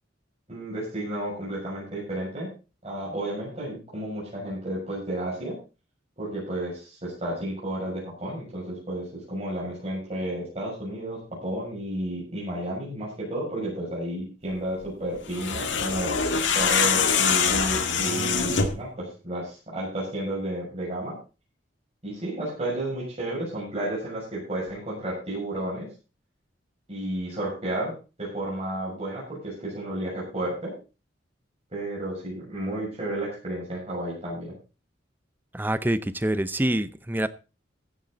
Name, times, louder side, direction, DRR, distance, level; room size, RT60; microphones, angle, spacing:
voice 1, 0.5-2.5 2.8-5.6 6.2-16.1 16.5-21.2 22.0-25.9 26.9-27.9 28.2-30.7 31.7-34.5, right 1 dB, 35° right, -6 dB, 6.9 m, -32 dB
sound 1, 15.3-18.9, left 6 dB, 75° left, 2.0 m, -24 dB
voice 2, 35.5-37.3, right 1 dB, 10° right, 14 dB, 0.7 m, -26 dB
15.0 x 10.5 x 4.1 m, 0.32 s
head